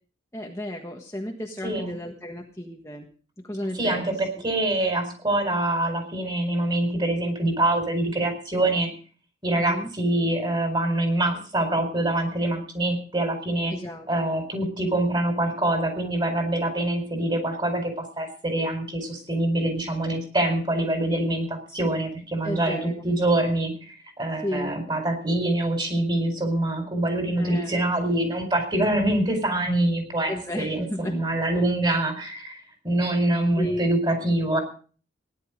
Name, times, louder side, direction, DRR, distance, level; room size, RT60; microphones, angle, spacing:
voice 1, 0.3-3.1 3.5-4.1 9.5-9.9 13.7-14.1 22.4-23.0 24.4-24.8 27.3-27.7 30.3-31.2 33.6-33.8, left 1 dB, 15° left, 0 dB, 1.5 m, -33 dB
voice 2, 1.6-1.9 3.7-8.9 9.4-13.7 14.1-34.6, right 1 dB, 25° right, 5 dB, 4.4 m, -25 dB
17.5 x 11.0 x 5.1 m, 0.40 s
head